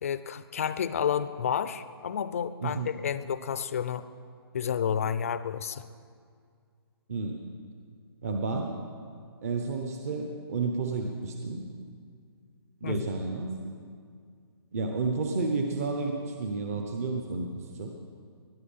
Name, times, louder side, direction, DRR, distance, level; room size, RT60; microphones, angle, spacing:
voice 1, 0.0-4.0 4.5-5.9 12.8-13.0, left 8 dB, 35° left, 13 dB, 0.5 m, -30 dB
voice 2, 2.6-2.9 7.1-7.4 8.2-8.8 9.4-11.7 12.8-13.7 14.7-17.9, right 3 dB, 35° right, 3 dB, 1.0 m, -31 dB
20.5 x 10.5 x 5.6 m, 2.2 s
hypercardioid pair, 170°, 13 cm